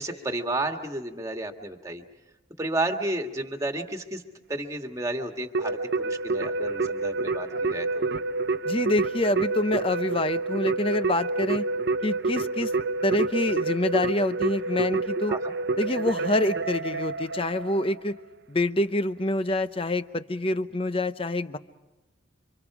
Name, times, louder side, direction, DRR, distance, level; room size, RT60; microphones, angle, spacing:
voice 1, 0.0-2.0 2.6-4.2 4.5-8.0 15.3-15.5, right 2 dB, 15° right, 4 dB, 1.8 m, -32 dB
Keyboard (musical), 5.5-18.0, right 3 dB, 55° right, 0.8 m, -28 dB
voice 2, 8.6-11.7 12.0-12.7 13.0-15.3 15.8-18.2 18.5-21.6, left 1 dB, 30° left, 12 dB, 0.7 m, -26 dB
30.0 x 25.0 x 4.8 m, 1.1 s
head